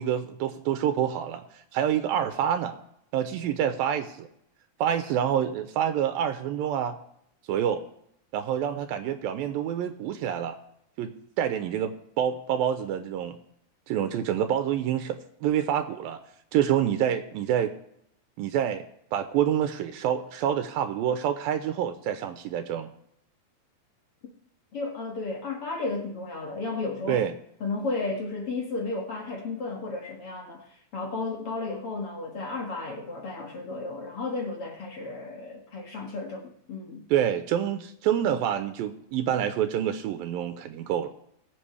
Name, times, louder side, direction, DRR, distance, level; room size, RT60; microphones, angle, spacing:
voice 1, 0.0-1.4 1.7-2.8 3.1-4.3 4.8-7.0 7.5-7.8 8.3-10.6 11.0-13.4 13.9-16.2 16.5-17.7 18.4-18.8 19.1-22.9 27.1-27.3 37.1-41.1, right 9 dB, 80° right, 2.5 m, -27 dB
voice 2, 24.7-27.2 27.6-30.6 30.9-37.1, left 3 dB, 45° left, 2.3 m, -33 dB
21.0 x 8.1 x 3.3 m
omnidirectional pair, 4.2 m